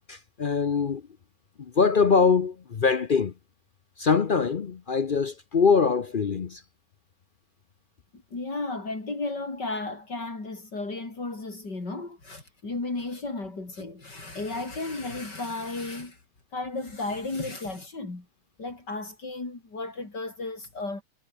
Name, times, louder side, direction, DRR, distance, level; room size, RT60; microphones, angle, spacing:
voice 1, 0.1-1.0 1.6-3.3 4.0-6.6, left 5 dB, 50° left, 0.6 m, -23 dB
voice 2, 8.3-16.2 16.5-18.3 18.6-21.0, left 3 dB, 75° left, 5.9 m, -34 dB
omnidirectional pair, 1.9 m